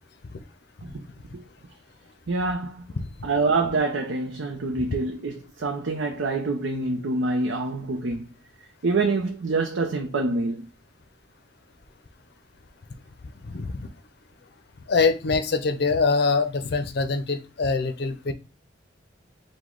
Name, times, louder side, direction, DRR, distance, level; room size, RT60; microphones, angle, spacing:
voice 1, 2.3-2.9 3.2-8.3 8.8-10.7, right 3 dB, 80° right, 0.6 m, -26 dB
voice 2, 13.4-13.9 14.9-18.3, left 4 dB, 60° left, 0.5 m, -24 dB
4.9 x 2.2 x 3.7 m
head